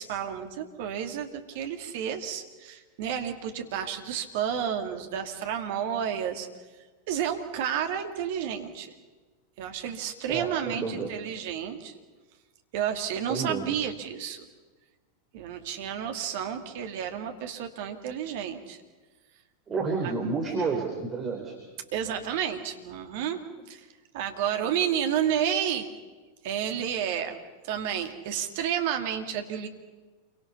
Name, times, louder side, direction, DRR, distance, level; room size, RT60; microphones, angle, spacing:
voice 1, 0.0-6.5 7.1-8.9 9.6-12.0 12.7-14.5 15.3-18.8 20.0-20.1 21.9-23.4 23.7-23.9 24.1-25.9 26.4-27.4 27.6-29.7, right 9 dB, 50° right, 5 dB, 2.5 m, -31 dB
voice 2, 10.3-11.1 13.3-13.7 19.7-21.5, right 4 dB, 20° right, 1 dB, 4.0 m, -30 dB
28.5 x 24.0 x 5.7 m, 1.3 s
figure-of-eight pair, 90°, 0 cm